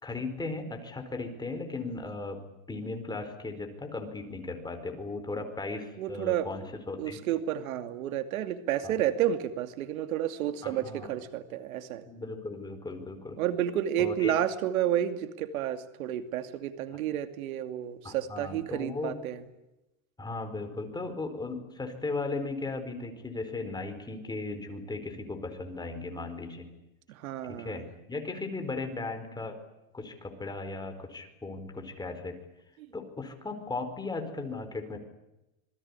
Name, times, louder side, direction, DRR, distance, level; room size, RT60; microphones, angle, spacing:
voice 1, 0.0-2.4 2.7-7.2 8.8-8.9 10.6-11.1 12.1-13.4 14.0-14.3 18.0-19.1 20.2-26.7 27.5-29.6 29.9-32.4 32.9-35.0, left 3 dB, 10° left, 6 dB, 4.4 m, -37 dB
voice 2, 6.0-6.5 7.0-12.1 13.4-19.4 27.1-27.8 32.8-32.9, right 11 dB, 90° right, 10 dB, 2.6 m, -31 dB
27.0 x 21.0 x 9.8 m, 0.94 s
supercardioid pair, 145°, 41 cm